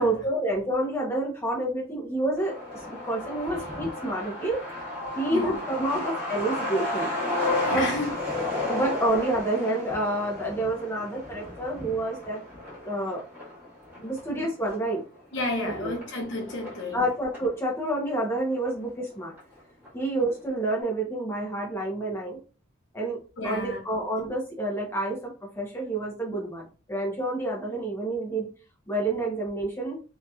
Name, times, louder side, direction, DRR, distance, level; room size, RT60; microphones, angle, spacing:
voice 1, 0.0-2.6 2.9-4.6 5.1-7.1 7.7-7.9 8.7-12.4 12.8-13.2 14.0-15.0 15.6-15.9 16.9-19.3 19.9-22.4 22.9-23.2 23.4-28.5 28.9-30.0, right 1 dB, 15° left, 0.8 m, -28 dB
Truck, 2.4-17.5 17.9-18.0 18.2-19.1 19.4-19.5 19.8-20.2, left 2 dB, 10° right, 1.5 m, -33 dB
voice 2, 7.6-8.7 14.0-14.2 15.3-17.0 23.4-23.8, left 2 dB, 65° left, 0.7 m, -32 dB
2.8 x 2.8 x 2.3 m
head